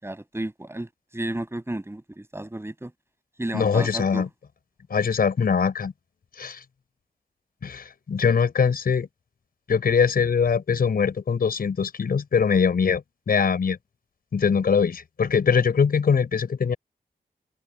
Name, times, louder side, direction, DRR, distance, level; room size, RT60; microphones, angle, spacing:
voice 1, 0.0-2.9 3.4-4.2, right 1 dB, 15° right, 6.6 m, -33 dB
voice 2, 3.5-4.3 4.9-5.9 6.4-6.6 7.6-9.1 9.7-13.8 14.3-16.8, left 6 dB, 80° left, 5.8 m, -22 dB
wide cardioid pair, 75°, 15 cm